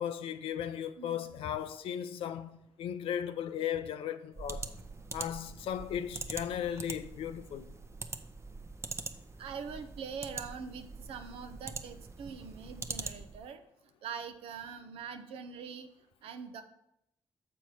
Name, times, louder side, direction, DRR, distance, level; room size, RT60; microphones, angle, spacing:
voice 1, 0.0-4.7 5.1-7.7, left 9 dB, 80° left, 0.5 m, -36 dB
voice 2, 1.0-1.4 9.4-13.6 14.0-15.9 16.2-16.6, right 6 dB, 85° right, 0.6 m, -43 dB
sound 1, 4.3-13.5, right 3 dB, 30° right, 0.7 m, -43 dB
6.9 x 4.5 x 6.2 m
supercardioid pair, 50°, 9 cm